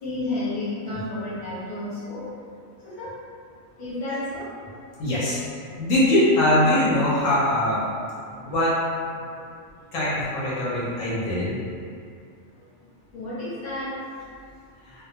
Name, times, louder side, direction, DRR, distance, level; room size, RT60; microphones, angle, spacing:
voice 1, 0.0-2.3 2.8-3.1 3.8-4.5 8.3-8.4 9.3-9.4 13.1-13.9, left 2 dB, 40° left, -10 dB, 0.9 m, -31 dB
voice 2, 5.0-5.4 5.8-7.8 8.4-8.8 9.9-11.6, left 1 dB, 75° left, -8 dB, 1.0 m, -22 dB
2.5 x 2.1 x 2.6 m, 2.3 s
omnidirectional pair, 1.4 m